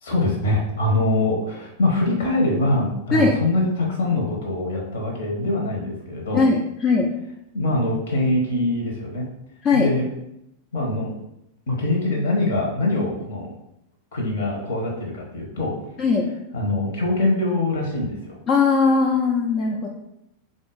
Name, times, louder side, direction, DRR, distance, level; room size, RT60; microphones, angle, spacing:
voice 1, 0.0-6.4 7.5-9.2 9.7-10.1 10.7-11.1 11.7-13.5 14.1-15.7 16.5-18.4, left 2 dB, 60° left, 0 dB, 1.1 m, -23 dB
voice 2, 6.3-7.1 9.6-9.9 16.0-16.3 18.5-19.9, left 4 dB, 30° left, -1 dB, 0.4 m, -19 dB
3.7 x 2.6 x 3.9 m, 0.82 s
figure-of-eight pair, 90°, 0 cm